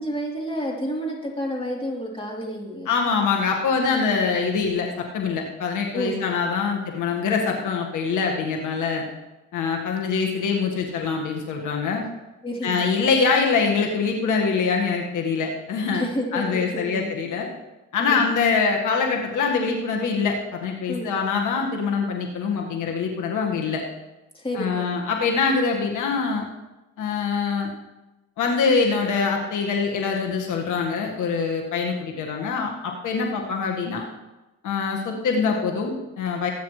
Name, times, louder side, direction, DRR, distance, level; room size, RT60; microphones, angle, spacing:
voice 1, 0.0-2.9 5.9-6.2 12.4-12.9 15.9-17.1 18.0-18.2 20.9-21.2 24.3-24.9, equal, 20° left, -3 dB, 3.6 m, -30 dB
voice 2, 2.9-9.0 9.5-12.0 12.6-16.0 16.3-17.5 17.9-23.8 24.6-26.4 27.0-27.7 28.4-34.1 34.6-36.5, left 5 dB, 80° left, 1 dB, 1.8 m, -24 dB
20.0 x 9.3 x 3.3 m, 1.0 s
cardioid pair, 90°, 30 cm